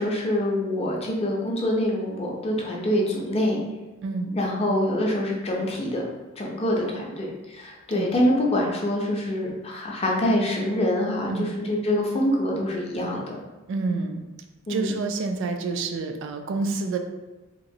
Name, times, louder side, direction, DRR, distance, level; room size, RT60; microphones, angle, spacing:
voice 1, 0.0-3.6 4.3-6.0 6.4-13.4 14.7-15.0, left 1 dB, 30° left, -1 dB, 0.5 m, -25 dB
voice 2, 13.7-14.2 14.7-17.0, right 3 dB, 60° right, 6 dB, 0.3 m, -28 dB
2.9 x 2.8 x 2.6 m, 1.2 s
head